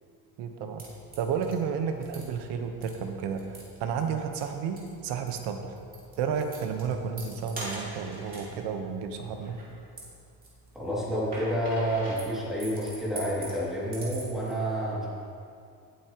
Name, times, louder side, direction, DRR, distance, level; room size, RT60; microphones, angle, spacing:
voice 1, 0.4-0.8 1.2-5.8 6.2-9.6, right 6 dB, 85° right, 5 dB, 1.2 m, -32 dB
sound 1, 0.8-14.5, right 1 dB, 20° right, 2.7 m, -45 dB
voice 2, 10.7-15.1, equal, ahead, -9 dB, 2.6 m, -29 dB
18.5 x 8.7 x 3.1 m, 2.4 s
cardioid pair, 165°, 40 cm